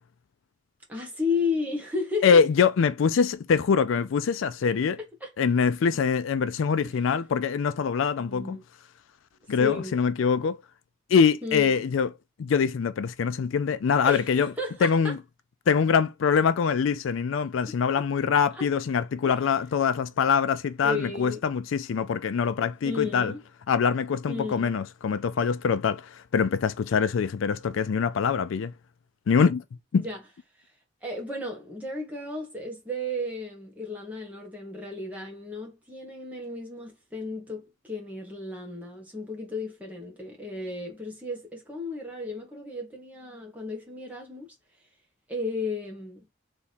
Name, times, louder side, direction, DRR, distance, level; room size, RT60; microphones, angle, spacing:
voice 1, 0.9-2.4 5.2-5.6 6.8-7.0 8.2-8.6 9.6-10.0 11.4-11.8 14.0-15.1 17.7-17.8 18.5-18.7 19.2-19.5 20.8-21.4 22.8-23.4 24.3-24.7 29.9-30.2 30.6-30.7 31.0-44.5 45.3-46.2, left 3 dB, 10° right, 1.3 m, -34 dB
voice 2, 2.2-5.0 5.4-8.6 9.5-10.6 11.1-12.1 12.4-14.5 14.8-15.2 15.7-23.3 23.7-28.7 29.3-29.6 29.9-30.0, left 6 dB, 75° left, 0.4 m, -24 dB
3.5 x 2.9 x 4.2 m
head